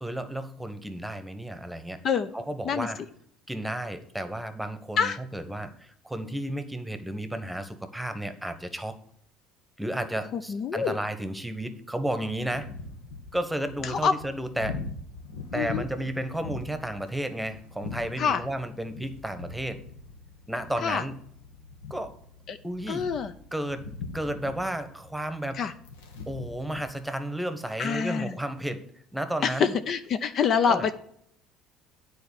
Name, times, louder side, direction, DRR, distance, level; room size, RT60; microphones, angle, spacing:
voice 1, 0.0-2.0 2.3-3.0 3.5-9.0 9.8-12.7 13.3-14.8 15.5-19.8 20.5-21.2 21.9-22.1 22.6-23.1 23.5-23.9 24.1-25.6 26.3-28.8 29.1-29.8 30.6-30.9, right 1 dB, 5° right, 10 dB, 1.2 m, -32 dB
voice 2, 10.3-11.0 13.8-14.1 15.5-15.8 18.2-18.4 20.8-21.0 22.5-22.6 22.9-23.3 25.6-25.7 27.8-28.3 29.4-31.0, left 6 dB, 50° left, 10 dB, 0.6 m, -26 dB
sound 1, 12.1-26.9, left 3 dB, 80° left, 1.2 m, -42 dB
9.4 x 4.4 x 6.9 m, 0.67 s
hypercardioid pair, 65°, 0 cm